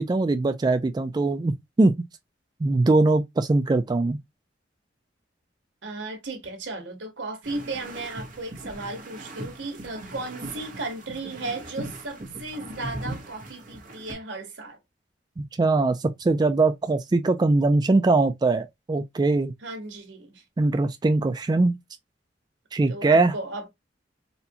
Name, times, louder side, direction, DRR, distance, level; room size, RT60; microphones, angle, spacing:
voice 1, 0.0-1.9 2.6-4.2 15.4-19.5 20.6-21.8 22.7-23.3, right 3 dB, 25° right, 0.3 m, -21 dB
voice 2, 5.8-14.8 19.6-20.4 22.9-23.7, right 2 dB, 80° right, 1.2 m, -35 dB
sound 1, 7.4-14.1, right 1 dB, 45° right, 1.0 m, -39 dB
4.1 x 2.2 x 2.7 m
head